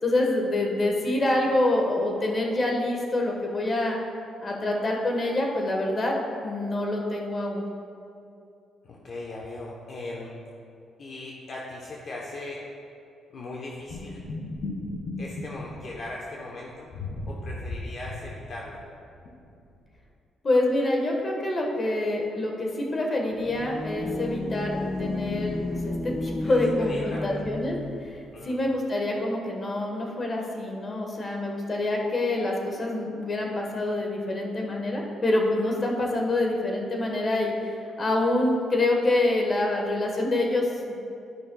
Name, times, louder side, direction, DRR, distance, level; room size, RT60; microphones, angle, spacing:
voice 1, 0.0-4.0 4.4-6.2 6.4-7.7 20.4-27.8 28.0-40.9, left 2 dB, 35° left, 0 dB, 1.3 m, -26 dB
voice 2, 8.8-10.3 11.0-12.7 13.3-14.2 15.2-16.9 17.3-18.8 26.4-27.4 28.3-28.6, left 2 dB, 50° left, -3 dB, 0.9 m, -39 dB
sound 1, 13.9-16.2 16.9-18.9 19.2-19.3 19.7-19.8, left 2 dB, 65° left, 1.5 m, -35 dB
sound 2, 23.3-28.1, left 2 dB, 15° left, 0.3 m, -32 dB
12.0 x 5.4 x 2.3 m, 2.6 s
cardioid pair, 90°, 0 cm